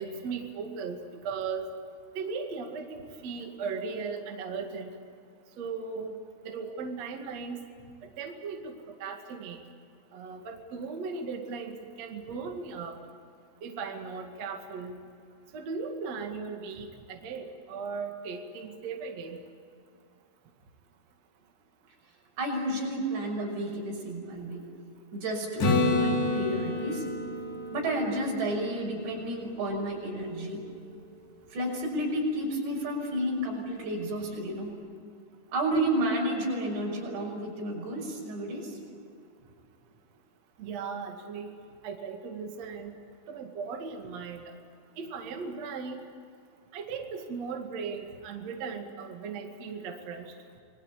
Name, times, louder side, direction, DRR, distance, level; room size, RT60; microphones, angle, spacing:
voice 1, 0.0-1.7 2.1-4.9 5.6-6.1 6.4-7.6 8.0-9.6 10.1-13.0 13.6-15.0 15.5-19.4 40.6-41.5 41.8-42.9 43.3-44.5 45.0-46.0 46.7-50.2, right 5 dB, 45° right, 2 dB, 2.8 m, -37 dB
voice 2, 22.4-24.6 25.1-27.1 27.7-30.6 31.5-34.7 35.5-38.8, right 1 dB, 80° right, 0 dB, 8.1 m, -31 dB
Acoustic guitar / Strum, 25.6-29.4 34.2-34.3, left 2 dB, 65° left, 6.1 m, -29 dB
29.0 x 21.0 x 8.5 m, 2.4 s
omnidirectional pair, 5.0 m